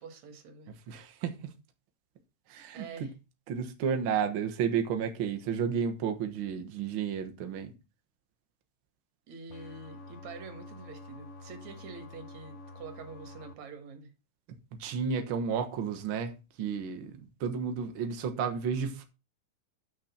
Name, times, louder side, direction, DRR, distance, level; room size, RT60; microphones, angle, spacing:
voice 1, 0.0-0.7 2.7-3.1 9.3-14.1, right 5 dB, 60° right, 2.7 m, -46 dB
voice 2, 0.9-1.5 2.5-3.1 3.5-7.7 14.5-19.0, right 7 dB, 80° right, 1.1 m, -32 dB
sound 1, 9.5-13.5, left 2 dB, 70° left, 1.2 m, -48 dB
7.4 x 6.3 x 5.8 m
omnidirectional pair, 4.0 m